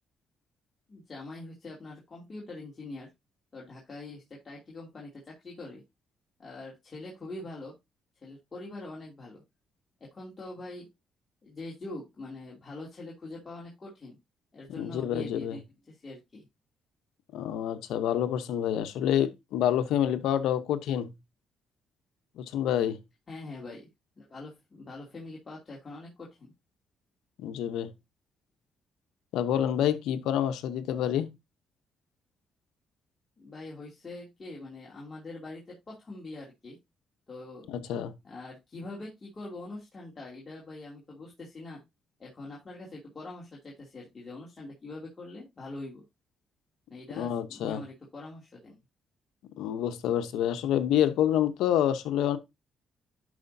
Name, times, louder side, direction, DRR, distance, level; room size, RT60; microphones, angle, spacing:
voice 1, 0.9-3.1 3.5-5.8 6.4-7.7 8.2-9.4 10.0-10.9 11.4-14.2 14.5-16.5 23.3-23.9 24.2-26.5 33.4-36.8 37.3-37.7 38.2-41.8 42.2-46.0 46.9-48.8, left 2 dB, 30° left, 2.6 m, -43 dB
voice 2, 14.8-15.6 17.3-21.1 22.4-23.0 27.4-27.9 29.3-31.3 37.7-38.1 47.2-47.8 49.6-52.4, left 10 dB, 90° left, 0.8 m, -27 dB
11.0 x 4.9 x 2.7 m
cardioid pair, 90°, 0 cm